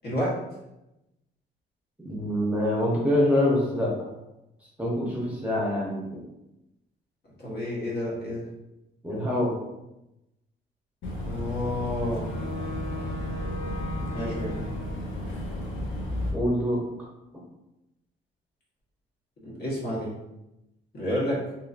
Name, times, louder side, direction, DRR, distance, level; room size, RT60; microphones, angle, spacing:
voice 1, 0.0-0.4 7.4-8.5 11.2-12.3 14.1-14.7 19.4-20.1 20.9-21.5, left 1 dB, 55° left, -6 dB, 1.3 m, -30 dB
voice 2, 2.0-4.1 4.8-6.2 9.0-9.6 16.3-16.8, left 1 dB, 5° right, -4 dB, 0.8 m, -25 dB
Boat Water vehicle / Engine, 11.0-16.3, left 1 dB, 75° left, 0.7 m, -32 dB
2.9 x 2.8 x 2.4 m, 0.91 s
cardioid pair, 90°, 20 cm